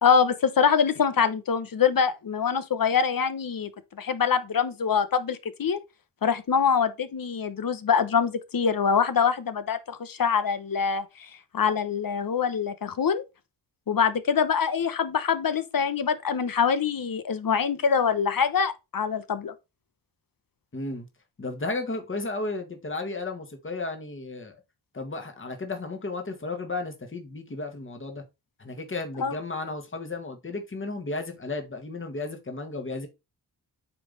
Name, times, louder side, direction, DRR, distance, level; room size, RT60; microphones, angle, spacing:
voice 1, 0.0-3.7 4.0-5.8 6.2-11.3 11.5-13.2 13.9-19.5 29.2-29.3, left 6 dB, 50° left, 1.0 m, -24 dB
voice 2, 20.7-21.1 21.4-24.6 24.9-28.2 28.6-33.1, left 3 dB, 30° left, 1.7 m, -34 dB
8.8 x 3.4 x 4.0 m
cardioid pair, 60°, 42 cm